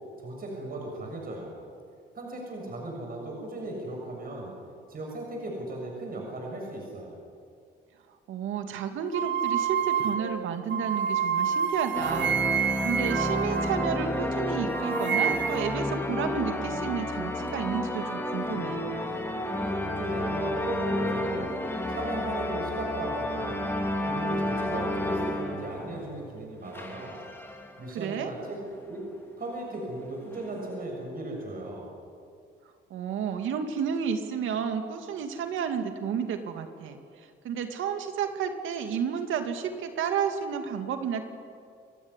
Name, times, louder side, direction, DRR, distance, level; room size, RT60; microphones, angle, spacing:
voice 1, 0.2-1.5 2.1-4.5 4.9-7.2 19.8-21.5 21.9-23.7 24.1-27.2 27.8-28.6 28.9-29.0 29.4-31.9, right 2 dB, 45° right, 0 dB, 6.7 m, -36 dB
voice 2, 8.3-18.8 27.9-28.3 32.9-37.0 37.4-41.2, right 7 dB, 80° right, 6 dB, 2.5 m, -31 dB
sound 1, 9.1-14.4 14.7-15.8, right 8 dB, 65° right, 1.2 m, -29 dB
sound 2, 11.9-26.3 26.7-27.9 28.5-28.6 28.8-29.0 29.7-30.8, left 1 dB, 10° left, 3.7 m, -31 dB
28.0 x 15.5 x 9.9 m, 2.2 s
cardioid pair, 90°, 20 cm